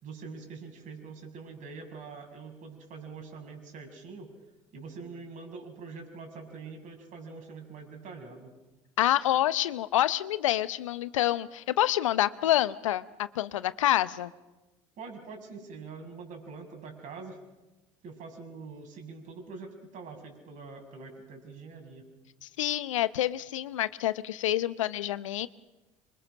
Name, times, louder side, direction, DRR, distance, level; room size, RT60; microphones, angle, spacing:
voice 1, 0.0-4.3 4.7-8.5 15.0-17.4 18.0-22.0, right 4 dB, 50° right, 3 dB, 6.5 m, -44 dB
voice 2, 9.0-14.3 22.4-25.5, left 13 dB, 80° left, 16 dB, 0.8 m, -27 dB
26.5 x 23.0 x 6.4 m, 1.1 s
hypercardioid pair, 65°, 16 cm